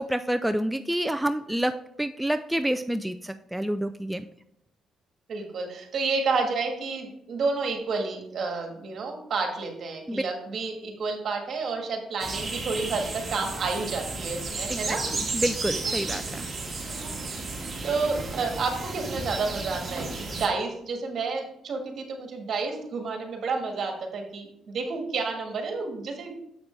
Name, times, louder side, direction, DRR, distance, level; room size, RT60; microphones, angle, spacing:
voice 1, 0.0-1.7 2.0-4.2 10.1-10.2 14.7-14.8 15.2-16.5, right 1 dB, 5° right, 8 dB, 0.3 m, -28 dB
voice 2, 5.3-15.2 17.0-17.1 17.8-26.3, right 4 dB, 60° right, 3 dB, 1.6 m, -30 dB
sound 1, 12.2-20.5, right 3 dB, 35° right, 1.9 m, -33 dB
7.3 x 6.1 x 3.3 m, 0.76 s
cardioid pair, 90°, 0 cm